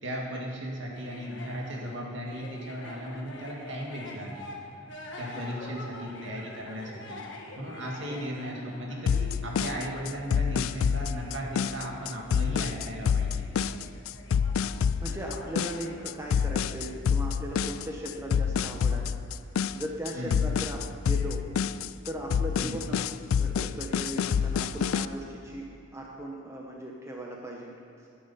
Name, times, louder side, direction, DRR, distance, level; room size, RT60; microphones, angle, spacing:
voice 1, 0.0-4.5 5.2-7.2 7.6-13.4 20.1-20.4 22.6-22.9, equal, 60° right, -1 dB, 2.2 m, -36 dB
Carnatic varnam by Dharini in Saveri raaga, 0.9-16.3, left 2 dB, 60° left, 1.6 m, -46 dB
sound 1, 9.1-25.1, left 7 dB, 80° left, 0.3 m, -27 dB
voice 2, 15.0-19.1 19.7-21.4 22.0-23.0 23.4-28.1, right 1 dB, 15° right, -1 dB, 0.9 m, -38 dB
12.0 x 10.0 x 5.6 m, 2.7 s
head